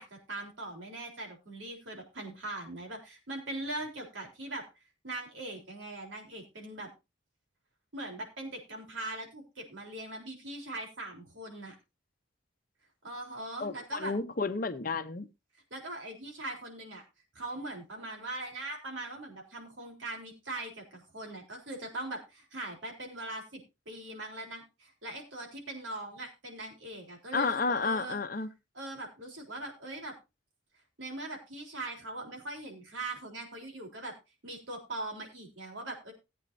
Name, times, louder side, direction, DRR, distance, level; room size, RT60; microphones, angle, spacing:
voice 1, 0.0-4.7 5.0-6.9 7.9-11.7 13.0-14.1 15.7-17.0 17.4-28.2 28.7-30.2 31.0-34.1 34.4-36.1, right 2 dB, 80° right, 3.8 m, -41 dB
voice 2, 13.6-15.3 27.3-28.5, left 4 dB, 45° left, 0.8 m, -31 dB
18.5 x 8.7 x 2.7 m
head